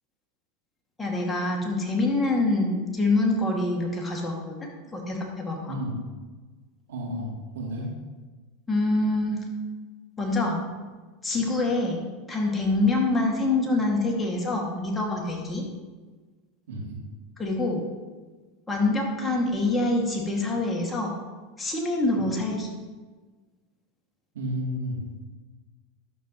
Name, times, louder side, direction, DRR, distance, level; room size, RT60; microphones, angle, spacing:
voice 1, 1.0-5.7 8.7-9.4 10.2-10.6 11.2-15.7 17.4-17.8 18.7-21.2 21.6-22.7, left 2 dB, 15° left, -1 dB, 2.0 m, -25 dB
voice 2, 5.6-6.0 6.9-7.9 16.7-17.0 24.3-25.1, equal, 75° right, -3 dB, 2.7 m, -32 dB
11.5 x 7.3 x 3.0 m, 1.3 s
hypercardioid pair, 95°, 0 cm